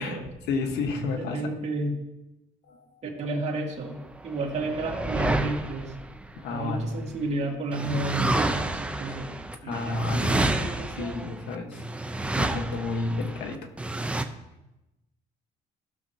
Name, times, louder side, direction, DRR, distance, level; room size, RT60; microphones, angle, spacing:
voice 1, 0.0-1.4 2.7-3.0 4.6-4.7 6.4-6.9 9.6-10.6 10.9-11.8 12.4-13.6, left 3 dB, 85° left, 5 dB, 1.4 m, -31 dB
voice 2, 1.1-2.0 3.0-4.0 4.2-5.9 6.5-9.3 9.6-11.2, right 2 dB, 40° right, -2 dB, 2.1 m, -32 dB
Whooshes Jimmy's Wind Surround, 4.1-7.2 7.7-14.2, right 2 dB, 5° right, 0.6 m, -29 dB
16.0 x 6.5 x 2.8 m, 0.95 s
cardioid pair, 110°, 17 cm